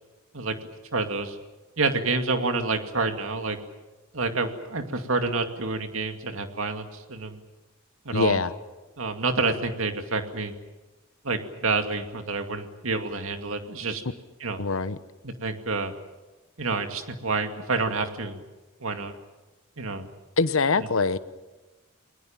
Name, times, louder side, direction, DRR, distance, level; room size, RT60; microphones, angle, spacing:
voice 1, 0.9-1.4 1.8-3.6 4.1-7.4 8.0-8.4 9.0-10.5 11.2-14.0 14.4-14.6 15.2-15.9 16.6-18.4 18.8-19.1 19.8-20.1 20.8-20.9, right 3 dB, 65° right, 6 dB, 2.4 m, -28 dB
voice 2, 8.1-8.5 14.6-15.0 20.4-21.2, left 4 dB, 65° left, 13 dB, 1.0 m, -23 dB
29.5 x 21.0 x 7.4 m, 1.2 s
head